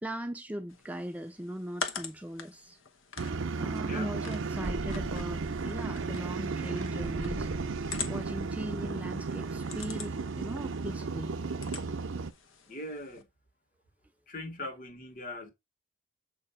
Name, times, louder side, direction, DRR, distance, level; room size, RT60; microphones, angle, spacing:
voice 1, 0.0-2.8 3.6-7.5 8.1-11.3, right 1 dB, 5° right, 0.3 m, -39 dB
sound 1, 0.7-13.2, left 5 dB, 85° left, 1.0 m, -45 dB
sound 2, 3.2-12.3, right 4 dB, 80° right, 0.6 m, -34 dB
voice 2, 3.8-4.1 12.7-13.3 14.3-15.5, left 1 dB, 45° left, 1.3 m, -40 dB
sound 3, 4.5-9.3, equal, 10° left, 0.9 m, -43 dB
7.7 x 2.9 x 5.4 m
head